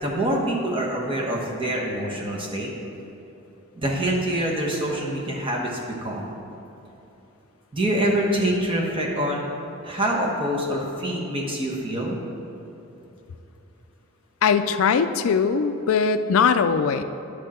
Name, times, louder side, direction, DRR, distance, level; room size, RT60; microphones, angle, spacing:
voice 1, 0.0-2.7 3.7-6.3 7.7-9.5 9.8-12.2, right 1 dB, 25° right, -2 dB, 1.2 m, -25 dB
voice 2, 14.4-17.0, left 6 dB, 75° left, 11 dB, 0.4 m, -20 dB
10.0 x 6.4 x 4.3 m, 3.0 s
head